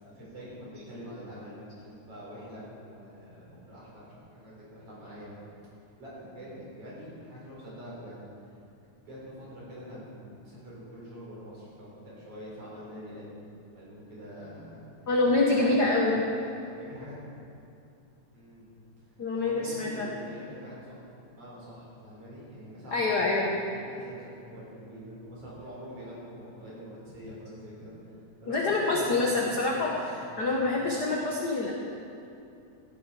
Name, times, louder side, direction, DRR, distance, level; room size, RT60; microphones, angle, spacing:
voice 1, 0.0-5.5 6.0-8.2 9.0-13.4 13.7-14.9 15.3-17.1 18.3-18.7 19.4-28.0 28.4-30.9, equal, 50° right, -6 dB, 5.1 m, -45 dB
voice 2, 15.1-16.2 19.2-20.1 22.9-23.6 28.5-31.7, left 2 dB, 65° left, -3 dB, 1.0 m, -26 dB
15.5 x 11.0 x 4.8 m, 2.7 s
omnidirectional pair, 3.6 m